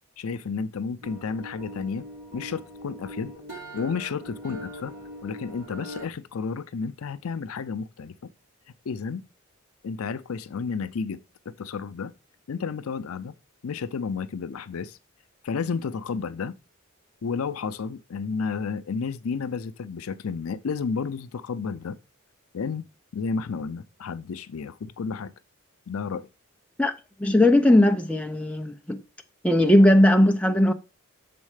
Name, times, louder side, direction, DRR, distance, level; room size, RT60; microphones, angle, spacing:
voice 1, 0.2-2.1 2.3-4.9 5.2-8.1 8.9-9.2 9.8-11.2 11.5-12.1 12.5-13.3 13.6-15.0 15.4-16.6 17.2-22.0 22.5-25.3 25.9-26.3, left 5 dB, 80° left, 0.5 m, -31 dB
sound 1, 1.0-6.0, equal, 50° right, 3.8 m, -41 dB
voice 2, 27.2-29.0 29.4-30.7, left 1 dB, 5° left, 0.5 m, -18 dB
6.4 x 4.2 x 4.8 m
head